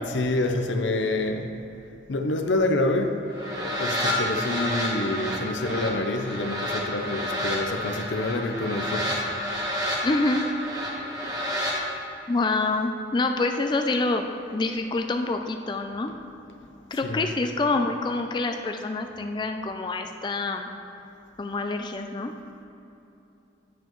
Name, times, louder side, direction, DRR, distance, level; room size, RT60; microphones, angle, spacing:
voice 1, 0.0-1.5 2.1-3.2 3.5-9.2 17.0-17.3, left 2 dB, 85° left, 5 dB, 0.7 m, -27 dB
sound 1, 3.3-11.8, equal, 20° right, 1.2 m, -30 dB
voice 2, 10.0-10.5 12.3-16.1 16.9-20.7 21.4-22.3, left 3 dB, 25° left, 5 dB, 0.3 m, -26 dB
9.3 x 7.7 x 3.1 m, 2.9 s
head